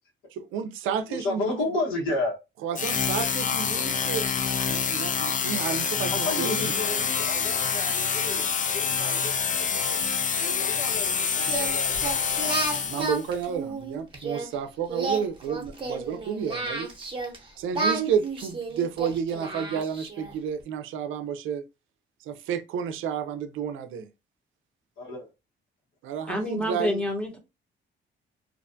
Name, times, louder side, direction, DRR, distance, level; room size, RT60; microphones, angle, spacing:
voice 1, 0.3-1.6 2.6-4.3 4.6-6.7 12.7-16.9 17.6-21.6 22.3-24.1 26.0-27.0, right 7 dB, 80° right, 0.4 m, -31 dB
voice 2, 1.1-2.4 6.1-10.0 10.4-12.2 25.0-25.3, left 2 dB, 90° left, 1.1 m, -32 dB
sound 1, 2.7-13.3, left 6 dB, 40° left, 0.4 m, -27 dB
Singing, 11.4-14.5 14.9-17.4 17.7-20.3, right 3 dB, 25° right, 0.8 m, -31 dB
voice 3, 26.3-27.4, left 1 dB, 5° left, 0.8 m, -28 dB
2.5 x 2.2 x 2.5 m
cardioid pair, 90°, 20 cm